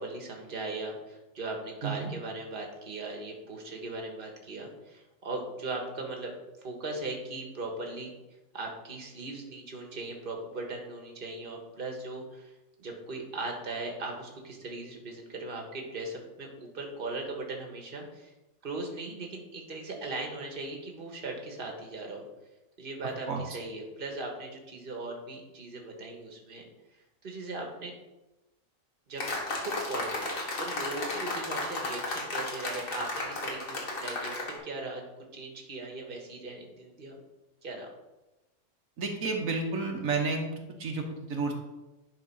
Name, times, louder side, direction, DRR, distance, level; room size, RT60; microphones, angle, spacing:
voice 1, 0.0-6.3 6.6-8.1 8.5-12.5 12.8-18.3 18.6-22.3 22.8-26.6 27.2-27.9 29.1-29.2 29.6-35.0 35.3-37.2 37.6-37.9, right 2 dB, 45° right, 1 dB, 1.5 m, -39 dB
sound 1, 29.2-34.6, left 2 dB, 80° left, 2.0 m, -34 dB
voice 2, 39.0-40.4 40.8-41.0 41.3-41.5, right 4 dB, 85° right, 2 dB, 1.5 m, -30 dB
10.5 x 3.8 x 5.5 m, 1.0 s
omnidirectional pair, 1.4 m